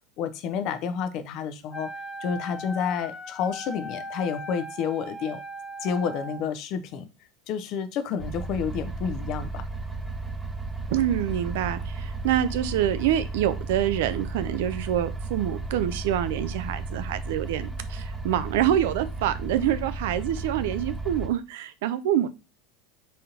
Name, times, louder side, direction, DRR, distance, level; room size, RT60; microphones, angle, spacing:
voice 1, 0.2-1.9 2.2-5.4 5.8-7.1 7.5-9.6, left 7 dB, 55° left, 11 dB, 0.7 m, -30 dB
Wind instrument woodwind instrument, 1.7-6.5, equal, 10° left, 1.2 m, -38 dB
sound 1, 8.2-21.3, right 3 dB, 15° right, 0.8 m, -34 dB
voice 2, 10.9-22.3, right 11 dB, 70° right, 13 dB, 0.4 m, -26 dB
4.2 x 3.7 x 2.8 m, 0.30 s
hypercardioid pair, 80°, 0 cm